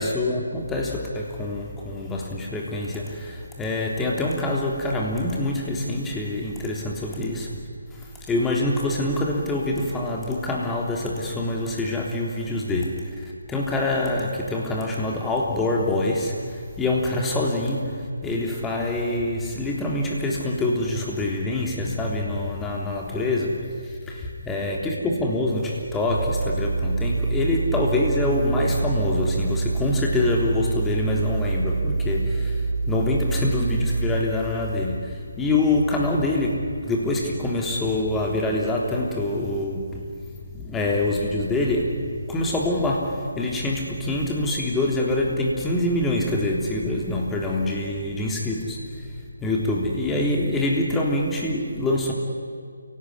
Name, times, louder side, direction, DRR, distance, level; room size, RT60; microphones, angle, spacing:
voice 1, 0.0-7.6 7.9-23.8 24.4-40.1 40.5-52.1, left 2 dB, 10° left, -1 dB, 3.2 m, -25 dB
sound 1, 26.1-34.2, right 3 dB, 60° right, 4.1 m, -26 dB
29.0 x 18.0 x 9.8 m, 2.1 s
figure-of-eight pair, 150°, 0 cm